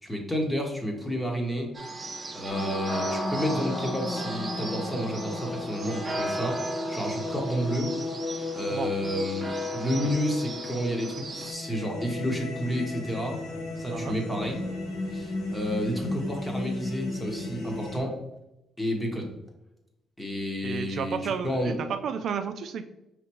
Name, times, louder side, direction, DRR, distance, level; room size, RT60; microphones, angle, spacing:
voice 1, 0.0-7.9 8.5-9.4 9.7-13.4 13.8-14.6 15.1-18.1 18.8-19.3 20.2-21.8, equal, 10° left, 1 dB, 1.2 m, -31 dB
sound 1, 1.7-11.5, right 2 dB, 30° right, 0.7 m, -36 dB
sound 2, 2.5-18.0, left 2 dB, 75° left, 1.3 m, -34 dB
voice 2, 9.7-10.1 13.9-14.2 20.6-22.8, right 6 dB, 65° right, 8 dB, 0.3 m, -32 dB
5.0 x 3.3 x 3.0 m, 0.89 s
cardioid pair, 90°, 0 cm